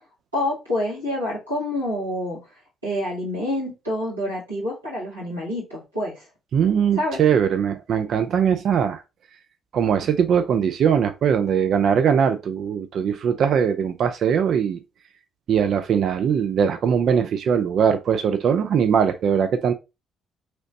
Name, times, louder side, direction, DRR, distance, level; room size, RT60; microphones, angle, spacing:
voice 1, 0.3-2.4 2.8-6.2 7.0-7.2, left 1 dB, 90° right, 1.7 m, -27 dB
voice 2, 6.5-9.0 9.7-14.8 15.5-19.7, right 7 dB, 55° right, 0.4 m, -21 dB
3.0 x 3.0 x 2.6 m
figure-of-eight pair, 45°, 0 cm